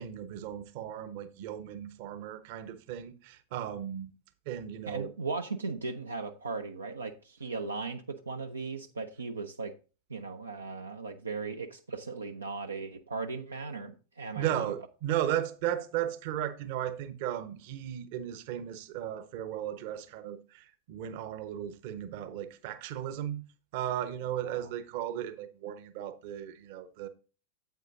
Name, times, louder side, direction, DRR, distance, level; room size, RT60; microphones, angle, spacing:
voice 1, 0.0-4.1 4.5-5.1 14.3-23.4 23.7-27.1, right 11 dB, 50° right, 0.9 m, -35 dB
voice 2, 4.9-9.7 10.1-14.7 24.4-24.7, right 4 dB, 75° right, 0.6 m, -37 dB
9.2 x 8.1 x 2.5 m
figure-of-eight pair, 90°, 0 cm